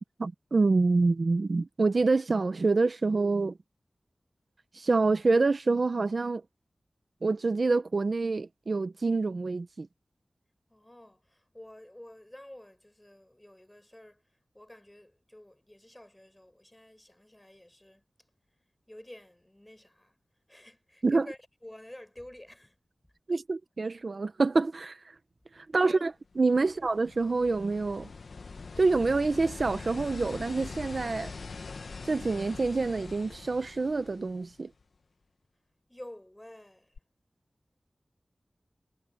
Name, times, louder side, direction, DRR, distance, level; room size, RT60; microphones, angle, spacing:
voice 1, 0.2-3.6 4.7-6.4 7.2-9.9 21.0-21.3 23.3-25.0 25.6-28.1 28.8-31.3 32.0-34.7, right 3 dB, 65° right, 1.2 m, -26 dB
voice 2, 10.7-14.2 14.5-18.0 18.9-20.1 20.5-22.8 25.7-26.0 26.6-26.7 35.9-36.9, left 1 dB, 15° left, 7.6 m, -50 dB
sound 1, 26.3-34.8 37.0-37.1, left 4 dB, 85° left, 1.1 m, -43 dB
cardioid pair, 45°, 0 cm